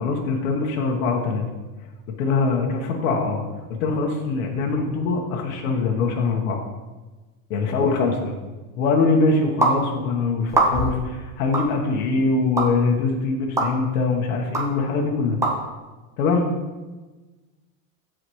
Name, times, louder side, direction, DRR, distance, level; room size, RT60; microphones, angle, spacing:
voice 1, 0.0-1.4 2.2-3.4 3.8-6.6 7.5-8.4 8.8-15.4 16.2-16.5, left 4 dB, 70° left, 0 dB, 1.4 m, -23 dB
sound 1, 9.6-9.8 10.5-11.0 11.5-11.7 12.6-12.7 13.6-13.7 14.5-14.6 15.4-15.5, right 2 dB, 5° right, 0.7 m, -20 dB
14.5 x 5.0 x 3.2 m, 1.2 s
supercardioid pair, 180°, 42 cm